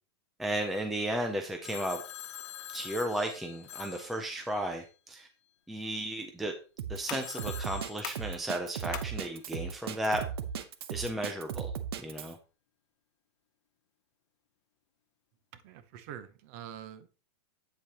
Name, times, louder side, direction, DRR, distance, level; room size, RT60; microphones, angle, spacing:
voice 1, 0.4-2.0 2.7-5.3 5.7-6.5 6.9-10.2 10.9-11.7 12.0-12.4, right 1 dB, ahead, 0.3 m, -34 dB
Telephone, 1.6-4.9 7.2-8.7, left 12 dB, 80° left, 0.7 m, -46 dB
sound 1, 5.6-12.5, left 11 dB, 40° left, 0.8 m, -49 dB
Drum kit, 6.8-12.3, right 8 dB, 60° right, 0.9 m, -37 dB
voice 2, 15.5-17.1, right 9 dB, 30° right, 0.7 m, -45 dB
8.5 x 7.6 x 2.8 m
supercardioid pair, 175°, 15 cm